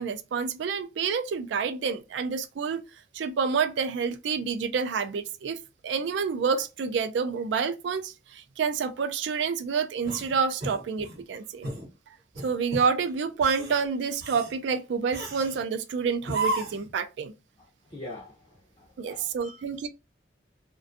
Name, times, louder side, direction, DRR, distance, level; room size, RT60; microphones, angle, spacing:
voice 1, 0.0-2.8 3.1-5.6 5.8-11.7 12.4-17.3 19.0-19.9, right 5 dB, 75° right, 0.3 m, -28 dB
sound 1, 10.0-11.2 11.6-11.9 12.3-12.9 13.3-13.8 14.2-14.5 15.1-15.6 16.2-16.9, right 2 dB, 55° right, 0.9 m, -33 dB
voice 2, 17.6-19.6, left 2 dB, 25° left, 0.5 m, -45 dB
2.5 x 2.2 x 2.5 m
head